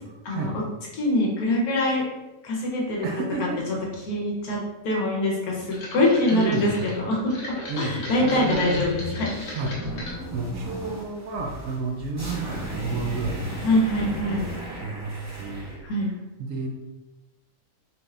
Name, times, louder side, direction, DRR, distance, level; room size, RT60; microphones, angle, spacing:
voice 1, 0.2-0.6 0.9-2.1 2.4-3.0 4.1-6.7 7.0-9.4 13.6-14.4 15.8-16.1, left 1 dB, 80° left, -2 dB, 1.4 m, -24 dB
voice 2, 3.0-3.6 6.3-6.9 7.7-8.8 9.5-9.8 10.3-14.6 14.8-16.1 16.4-16.7, right 3 dB, 70° right, 1 dB, 0.9 m, -31 dB
sound 1, 5.7-10.2 10.7-11.2 11.5-11.6, left 1 dB, 55° left, 1.2 m, -37 dB
sound 2, 8.4-15.8, right 1 dB, 15° right, 0.5 m, -36 dB
4.2 x 2.5 x 3.2 m, 1.1 s
omnidirectional pair, 1.6 m